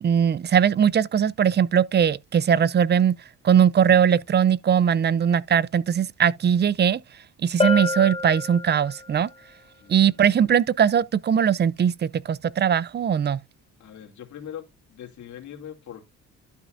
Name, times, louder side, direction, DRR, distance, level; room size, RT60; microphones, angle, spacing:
voice 1, 0.0-3.2 3.4-7.0 7.4-9.3 9.9-13.4, right 8 dB, 35° right, 0.5 m, -20 dB
Bell, 7.6-9.2, left 3 dB, 20° left, 0.9 m, -27 dB
voice 2, 13.8-14.6 14.9-16.1, left 10 dB, 70° left, 2.7 m, -40 dB
12.0 x 5.6 x 2.5 m
cardioid pair, 90°, 30 cm